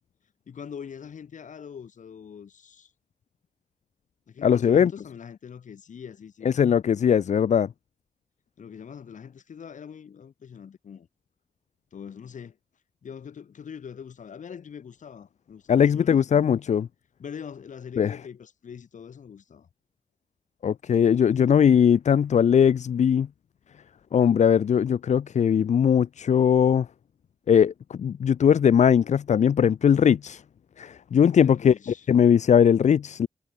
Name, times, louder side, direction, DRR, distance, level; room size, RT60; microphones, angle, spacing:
voice 1, 0.5-2.9 4.3-6.5 8.6-11.1 11.9-12.6 13.0-16.4 17.2-19.7 31.4-32.1, left 7 dB, 85° left, 4.0 m, -42 dB
voice 2, 4.4-4.9 6.5-7.7 15.7-16.9 18.0-18.1 20.6-23.3 24.1-26.9 27.5-30.4 30.8-31.7 32.1-33.3, left 8 dB, 70° left, 0.5 m, -20 dB
cardioid pair, 55°, 13 cm